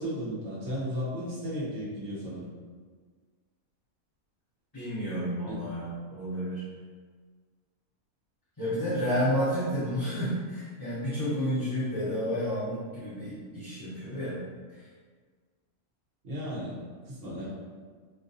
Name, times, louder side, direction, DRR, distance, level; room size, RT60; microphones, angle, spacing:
voice 1, 0.0-2.5 5.5-5.6 16.2-16.8 17.0-17.5, equal, 65° right, -7 dB, 1.4 m, -34 dB
voice 2, 4.7-6.6 8.6-14.4 14.7-14.9 17.4-17.5, equal, 20° left, -14 dB, 1.0 m, -31 dB
5.7 x 2.3 x 2.7 m, 1.5 s
omnidirectional pair, 1.4 m